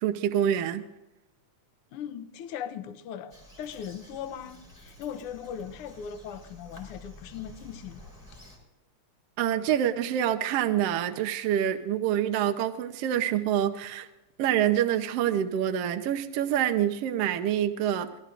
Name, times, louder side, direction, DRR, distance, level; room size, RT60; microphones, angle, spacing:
voice 1, 0.0-0.8 9.4-14.1 14.4-18.1, right 10 dB, 70° right, 1.6 m, -26 dB
voice 2, 1.9-8.1, left 8 dB, 80° left, 1.3 m, -39 dB
Bird vocalization bird call bird song, 3.3-8.6, left 1 dB, 5° left, 3.6 m, -50 dB
25.5 x 18.5 x 2.5 m
omnidirectional pair, 3.4 m